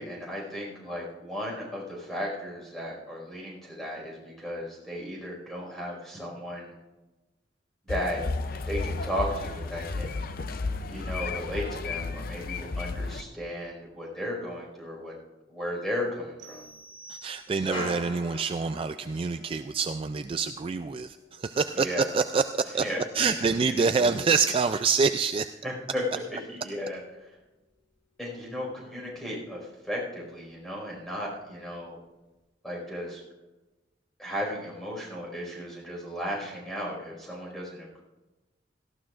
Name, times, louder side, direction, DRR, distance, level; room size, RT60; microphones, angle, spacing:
voice 1, 0.0-6.7 7.9-8.2 8.7-10.3 10.9-15.1 15.5-16.7 17.5-17.9 21.7-22.1 22.8-23.3 23.6-24.2 25.6-26.0 26.3-27.0 28.2-32.0 32.6-33.2 34.2-38.0, equal, ahead, -3 dB, 4.9 m, -35 dB
sound 1, 7.9-13.2, left 3 dB, 55° left, 0.6 m, -33 dB
sound 2, 15.6-27.2 27.5-29.1 29.4-29.5 29.8-30.3 30.6-31.8 32.3-32.4, left 1 dB, 30° left, 5.0 m, -48 dB
sound 3, 16.4-17.9, right 2 dB, 80° right, 0.8 m, -49 dB
voice 2, 17.1-22.9 23.1-25.5, right 5 dB, 30° right, 10 dB, 0.3 m, -26 dB
18.0 x 15.0 x 2.5 m, 1.1 s
head